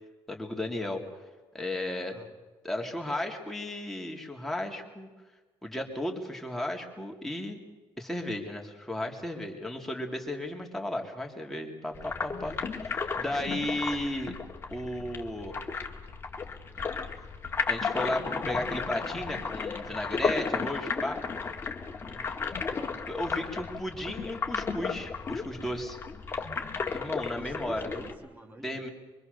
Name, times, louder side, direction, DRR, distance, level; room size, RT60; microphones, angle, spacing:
voice 1, 0.3-1.0 1.5-2.1 2.6-5.1 5.6-7.6 8.0-14.3 14.7-15.6 17.7-21.2 23.1-26.0 26.9-27.9 28.6-28.9, left 1 dB, 5° left, 1 dB, 3.0 m, -34 dB
sound 1, 11.9-28.1, left 5 dB, 25° left, 2.1 m, -34 dB
voice 2, 22.0-22.4 22.7-23.0 27.3-28.9, right 2 dB, 20° right, 4 dB, 2.9 m, -47 dB
24.5 x 24.5 x 6.8 m, 1.3 s
cardioid pair, 160°, 9 cm